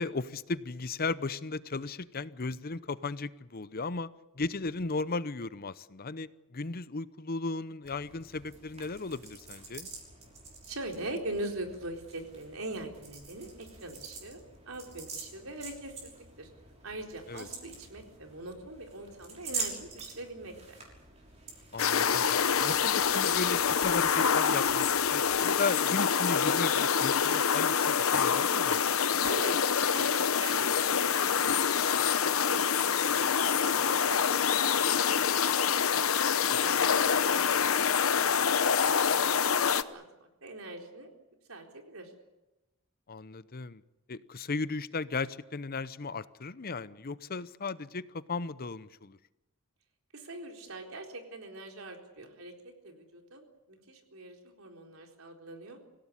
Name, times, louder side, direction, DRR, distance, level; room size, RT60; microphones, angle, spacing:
voice 1, 0.0-4.1 4.3-9.9 17.3-17.5 21.7-28.9 36.5-36.8 43.1-43.8 44.1-49.2, left 3 dB, 45° left, 16 dB, 0.8 m, -36 dB
sound 1, 7.8-25.5, right 4 dB, 35° right, 6.2 m, -46 dB
voice 2, 10.6-16.5 16.8-20.8 29.2-29.6 29.8-33.2 33.6-35.8 36.5-38.2 38.5-41.1 41.5-42.1 50.1-55.8, right 2 dB, 85° right, 3 dB, 4.1 m, -42 dB
sound 2, 21.8-39.8, left 7 dB, 85° left, 0.9 m, -26 dB
25.5 x 17.0 x 9.9 m, 0.99 s
head